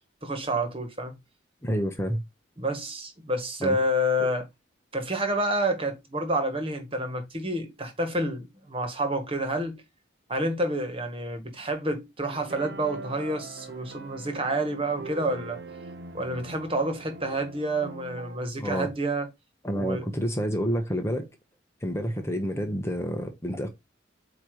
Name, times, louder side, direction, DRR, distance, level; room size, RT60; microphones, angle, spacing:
voice 1, 0.2-1.2 2.6-4.4 4.9-9.8 10.3-15.6 16.1-19.3 19.7-20.0, right 1 dB, 30° right, 1.8 m, -29 dB
voice 2, 1.6-2.2 3.6-3.8 18.6-18.9 19.6-21.3 21.8-23.7, equal, 15° left, 1.1 m, -29 dB
sound 1, 12.3-18.4, right 3 dB, 65° right, 0.9 m, -42 dB
8.5 x 3.0 x 5.0 m
head